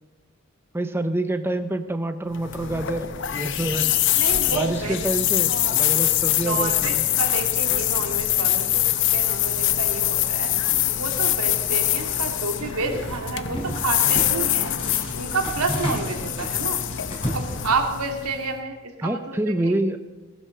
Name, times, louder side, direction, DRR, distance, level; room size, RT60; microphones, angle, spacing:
voice 1, 0.7-3.9 4.5-7.0 19.0-20.0, right 1 dB, 10° right, 9 dB, 0.6 m, -27 dB
sound 1, 2.3-18.5, left 12 dB, 55° left, 0.8 m, -24 dB
voice 2, 4.2-5.0 6.4-10.5 11.0-14.7 15.1-16.9 17.3-19.7, right 3 dB, 90° right, 4 dB, 2.4 m, -29 dB
sound 2, 12.6-13.2 13.5-14.4 14.8-18.0, equal, 25° left, 3.9 m, -32 dB
18.5 x 10.5 x 6.6 m, 1.2 s
head